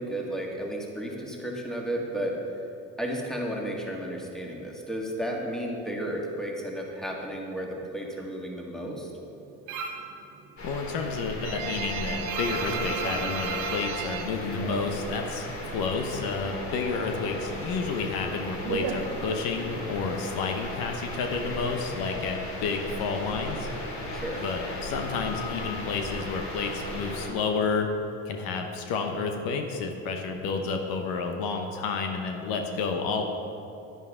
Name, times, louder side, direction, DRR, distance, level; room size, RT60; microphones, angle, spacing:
voice 1, 0.0-2.4 3.0-9.1 24.1-24.4, right 1 dB, ahead, -1 dB, 1.8 m, -33 dB
sound 1, 9.7-10.1 10.5-15.3 15.6-16.7 16.9-19.8, right 5 dB, 80° right, 1.1 m, -34 dB
voice 2, 10.6-23.7 24.4-27.9 28.3-33.2, left 4 dB, 75° left, 4 dB, 1.0 m, -30 dB
sound 2, 10.6-27.3, left 2 dB, 50° left, 2.4 m, -36 dB
10.5 x 9.3 x 3.7 m, 2.8 s
supercardioid pair, 80°, 35 cm